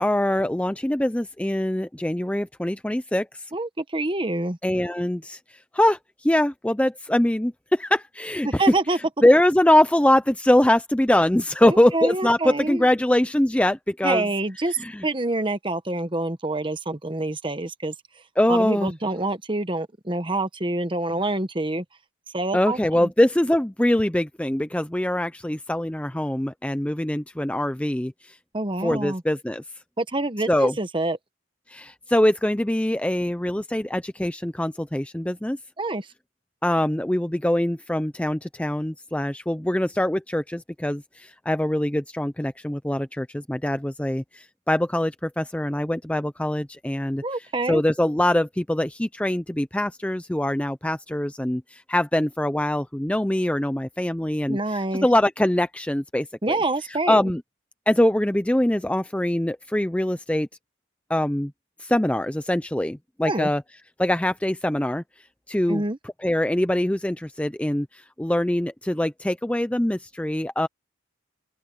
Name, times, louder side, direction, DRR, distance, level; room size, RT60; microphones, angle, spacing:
voice 1, 0.0-3.5 4.6-8.6 8.9-14.3 14.7-15.1 18.4-18.9 22.5-28.4 28.8-29.6 30.5-30.8 31.7-35.6 36.6-56.6 56.8-57.4 57.9-60.5 61.1-61.5 61.8-63.6 64.0-65.0 65.5-70.7, left 1 dB, 5° left, 0.5 m, -23 dB
voice 2, 3.5-4.6 8.4-9.0 11.6-12.8 14.0-14.8 15.0-17.9 18.5-21.8 22.3-23.1 28.5-29.2 30.0-31.2 35.8-36.1 47.2-47.8 54.5-55.1 56.4-57.2 63.3-63.5 65.7-66.0, right 2 dB, 25° right, 1.2 m, -26 dB
open air
head